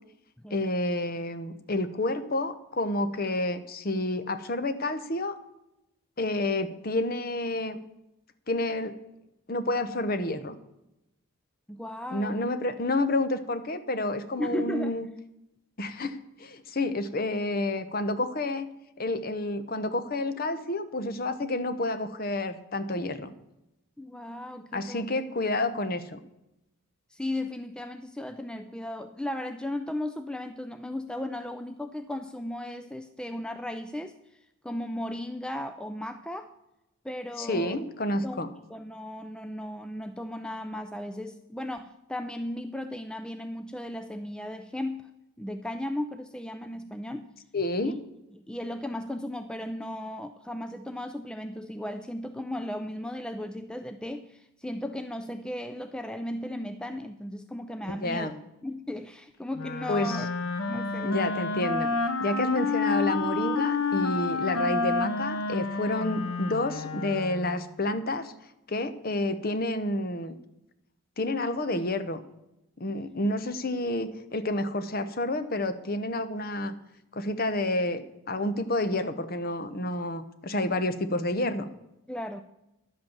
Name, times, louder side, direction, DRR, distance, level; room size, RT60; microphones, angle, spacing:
voice 1, 0.5-5.4 6.2-7.8 8.5-8.9 9.5-10.5 12.1-15.1 15.8-18.7 19.0-23.3 24.7-26.2 37.4-38.5 47.5-48.0 57.8-58.3 59.9-60.2 61.0-61.9 62.2-68.3 68.7-70.4 71.2-72.2 72.8-76.7 77.1-78.0 78.3-81.7, left 2 dB, 45° left, 11 dB, 0.8 m, -29 dB
voice 2, 11.7-12.4 14.4-14.9 24.0-25.1 27.1-34.1 34.6-36.5 37.0-37.8 38.2-45.1 45.4-47.3 47.8-48.0 48.3-58.3 58.6-60.3 60.7-61.2 82.1-82.4, left 1 dB, 5° left, 8 dB, 0.3 m, -36 dB
Wind instrument woodwind instrument, 59.5-67.6, left 3 dB, 70° left, 1.1 m, -29 dB
11.5 x 7.9 x 7.1 m, 0.91 s
head